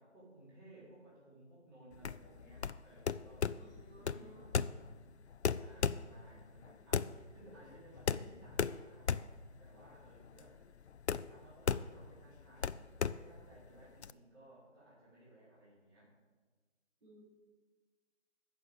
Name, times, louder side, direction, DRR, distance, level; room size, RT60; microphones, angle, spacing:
voice 1, 0.0-4.6 5.5-10.6 11.2-16.1, right 1 dB, 20° right, -10 dB, 4.1 m, -59 dB
sound 1, 1.9-14.1, left 6 dB, 65° left, 0.5 m, -37 dB
voice 2, 3.6-4.9 17.0-17.2, right 1 dB, 40° right, -6 dB, 4.1 m, -60 dB
9.7 x 6.7 x 8.1 m, 1.4 s
figure-of-eight pair, 170°, 36 cm